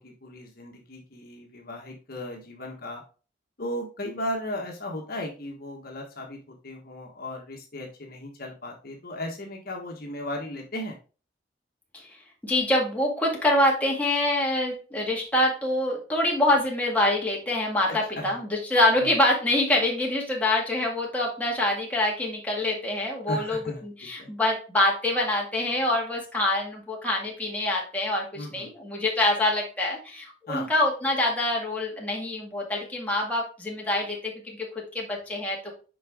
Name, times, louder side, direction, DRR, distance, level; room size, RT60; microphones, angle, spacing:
voice 1, 0.0-3.0 3.6-11.0 17.8-18.3 18.9-19.1 23.3-24.3 28.3-28.7 30.5-30.7, left 1 dB, 55° left, 1 dB, 1.3 m, -36 dB
voice 2, 12.4-23.6 23.8-35.8, left 1 dB, 10° left, -2 dB, 2.1 m, -25 dB
7.6 x 5.0 x 3.6 m, 0.36 s
head